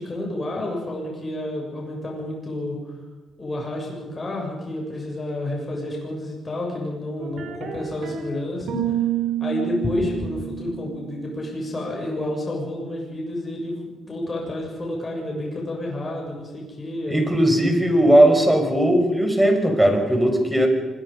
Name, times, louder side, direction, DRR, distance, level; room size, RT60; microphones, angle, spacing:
voice 1, 0.0-2.8 3.4-9.0 9.4-17.3, left 1 dB, 30° left, -1 dB, 7.4 m, -30 dB
sound 1, 7.2-8.2 8.6-11.5, right 11 dB, 70° right, 4.2 m, -29 dB
voice 2, 17.1-20.7, right 1 dB, 10° right, 5 dB, 5.5 m, -18 dB
25.5 x 21.5 x 5.4 m, 1.3 s
cardioid pair, 90°, 0 cm